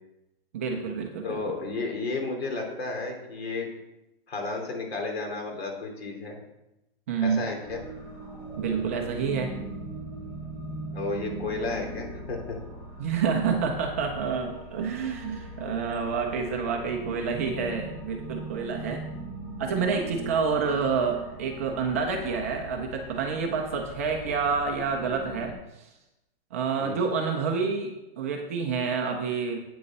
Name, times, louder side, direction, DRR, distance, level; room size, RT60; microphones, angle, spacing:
voice 1, 0.5-1.4 7.1-7.5 8.6-9.5 13.0-19.0 19.6-25.9 26.5-29.6, right 5 dB, 15° right, 2 dB, 0.4 m, -28 dB
voice 2, 1.2-3.7 4.3-6.4 7.2-7.8 10.9-12.6 26.8-27.0, left 3 dB, 90° left, 1 dB, 3.0 m, -32 dB
sound 1, 7.6-25.6, right 1 dB, 35° left, 2.3 m, -40 dB
8.6 x 6.8 x 5.3 m, 0.92 s
hypercardioid pair, 170°, 30 cm